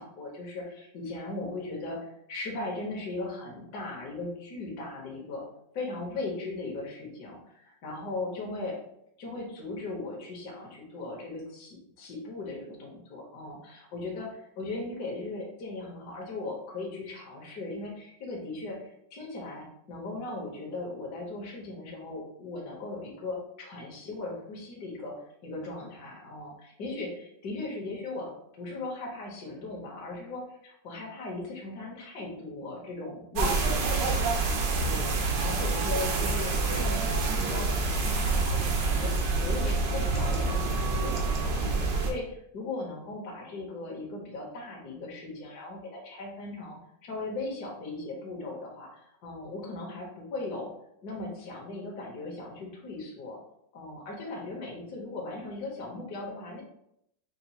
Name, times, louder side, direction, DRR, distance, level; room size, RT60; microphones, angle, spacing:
voice 1, 0.0-5.4 5.7-8.8 9.2-25.1 25.4-41.1 41.5-42.2 42.5-50.7 51.0-53.4 53.7-56.6, left 2 dB, 65° left, -2 dB, 1.4 m, -38 dB
sound 1, 33.4-42.1, right 3 dB, 80° right, 1.4 m, -27 dB
5.7 x 2.3 x 2.8 m, 0.76 s
omnidirectional pair, 2.0 m